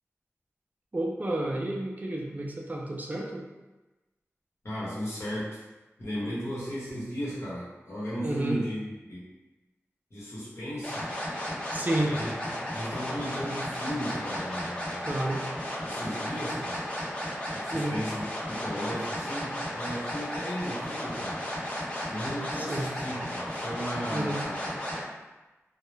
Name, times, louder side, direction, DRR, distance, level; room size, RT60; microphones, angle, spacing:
voice 1, 0.9-3.4 8.2-8.6 11.7-12.1 15.0-15.4 17.7-18.0 22.5-22.9 24.1-24.4, right 1 dB, 35° right, -1 dB, 0.4 m, -30 dB
voice 2, 4.6-5.6 6.0-9.3 10.1-11.0 12.0-15.1 15.8-16.8 17.5-21.4 22.1-24.6, equal, 60° left, -8 dB, 1.0 m, -36 dB
sound 1, 10.8-25.0, equal, 25° left, 0.7 m, -34 dB
2.2 x 2.0 x 3.1 m, 1.1 s
wide cardioid pair, 60°, 5 cm